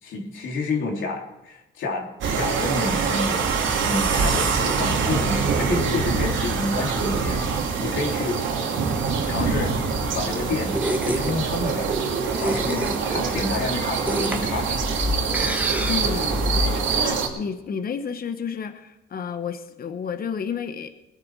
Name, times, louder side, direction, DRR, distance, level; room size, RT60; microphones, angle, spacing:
voice 1, 0.0-3.4 3.8-8.4 9.3-9.8 10.1-10.8 11.0-14.8, left 3 dB, 75° left, 0 dB, 3.2 m, -29 dB
sound 1, 2.2-17.3, right 5 dB, 75° right, 2.5 m, -25 dB
sound 2, 8.9-17.0, left 1 dB, 10° right, 1.8 m, -29 dB
voice 2, 15.9-16.4 17.0-20.9, left 6 dB, 50° left, 9 dB, 1.2 m, -31 dB
21.0 x 9.8 x 4.7 m, 0.98 s
cardioid pair, 90°, 20 cm